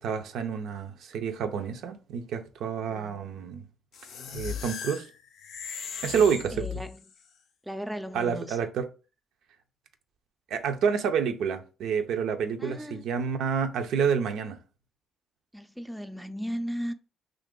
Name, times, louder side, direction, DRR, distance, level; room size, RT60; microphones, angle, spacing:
voice 1, 0.0-3.6 4.3-5.1 6.0-6.7 8.1-8.9 10.5-14.6, right 6 dB, 80° right, 0.4 m, -28 dB
voice 2, 2.9-3.2 6.5-7.0 7.7-8.6 12.6-13.0 15.5-16.9, equal, 5° right, 0.3 m, -36 dB
sound 1, 3.9-7.2, left 7 dB, 80° left, 0.5 m, -38 dB
2.9 x 2.4 x 3.6 m
cardioid pair, 90°, 0 cm